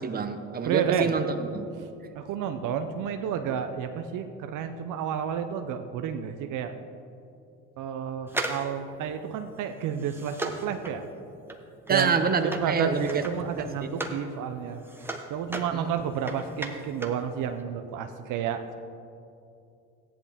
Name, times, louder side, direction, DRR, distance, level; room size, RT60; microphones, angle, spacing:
voice 1, 0.0-1.7 11.9-13.2 13.8-14.1 15.7-15.9, right 5 dB, 25° right, 8 dB, 0.9 m, -27 dB
voice 2, 0.6-1.1 1.8-1.9 2.1-6.7 7.8-11.1 11.9-14.8 15.3-18.6, right 8 dB, 60° right, 7 dB, 0.8 m, -31 dB
sound 1, 8.3-14.3 14.6-17.3 17.5-17.6, right 2 dB, 5° right, 1.1 m, -37 dB
14.0 x 10.0 x 3.6 m, 2.6 s
supercardioid pair, 80°, 35 cm